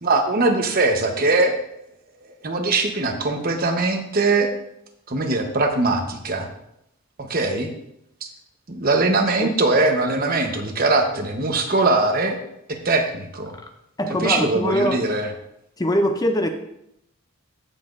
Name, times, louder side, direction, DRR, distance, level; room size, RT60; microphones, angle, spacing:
voice 1, 0.0-1.6 2.4-4.5 5.1-6.5 7.3-7.7 8.7-12.4 12.7-13.6 14.2-15.3, right 3 dB, 40° right, 4 dB, 1.0 m, -21 dB
voice 2, 14.0-15.0 15.8-16.5, equal, 15° left, 6 dB, 0.5 m, -22 dB
15.0 x 5.9 x 2.6 m, 0.79 s
head